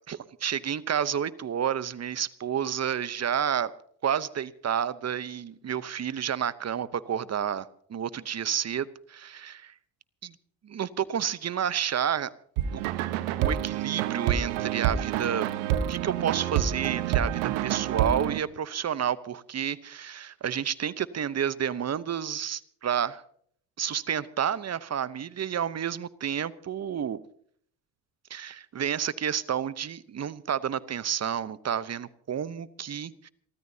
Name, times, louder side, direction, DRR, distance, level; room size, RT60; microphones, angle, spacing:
voice 1, 0.1-3.7 4.0-9.7 10.2-10.3 10.6-12.3 12.7-12.8 13.4-15.5 15.9-23.2 23.8-27.2 28.3-33.3, right 8 dB, 30° right, 17 dB, 0.9 m, -30 dB
sound 1, 12.6-18.4, right 10 dB, 75° right, 1.3 m, -28 dB
28.0 x 13.5 x 2.8 m, 0.62 s
supercardioid pair, 75°, 50 cm